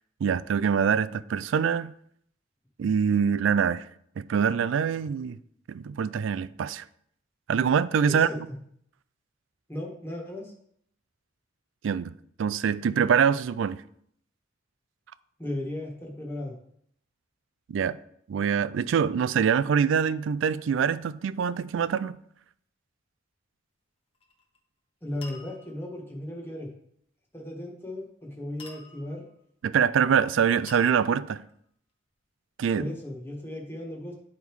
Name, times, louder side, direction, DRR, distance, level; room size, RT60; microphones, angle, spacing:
voice 1, 0.2-1.9 2.8-3.9 4.2-5.4 5.7-6.8 7.5-8.3 11.8-12.1 12.4-13.8 17.7-18.0 18.3-22.2 29.6-31.4 32.6-32.9, right 7 dB, 75° right, 0.3 m, -24 dB
voice 2, 8.0-8.4 9.7-10.5 15.4-16.5 25.0-26.7 27.3-29.2 32.7-34.1, left 1 dB, 10° left, 1.5 m, -36 dB
sound 1, 24.1-24.6 25.2-25.9 28.6-29.3 30.7-31.5, left 3 dB, 30° left, 1.1 m, -48 dB
10.0 x 3.6 x 4.7 m
head